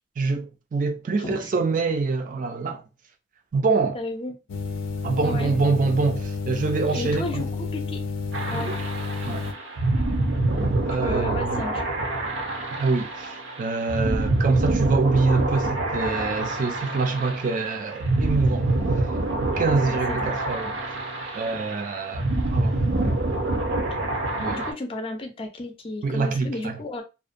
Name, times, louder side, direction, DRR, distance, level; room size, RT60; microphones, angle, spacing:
voice 1, 0.2-2.8 3.5-4.0 5.0-7.4 8.5-8.7 9.2-9.5 10.9-11.6 12.8-13.3 13.6-18.7 19.4-20.8 21.3-22.8 24.4-24.6 26.0-26.8, right 4 dB, 40° right, 0.3 m, -25 dB
voice 2, 1.2-1.5 3.9-4.4 5.2-5.5 6.9-8.0 8.5-8.7 10.9-11.8 19.7-20.3 24.5-27.0, left 2 dB, 30° left, 0.4 m, -33 dB
sound 1, 4.5-9.5, left 4 dB, 90° left, 0.4 m, -30 dB
sound 2, 8.3-24.7, right 2 dB, 85° right, 0.7 m, -26 dB
2.5 x 2.1 x 2.5 m
head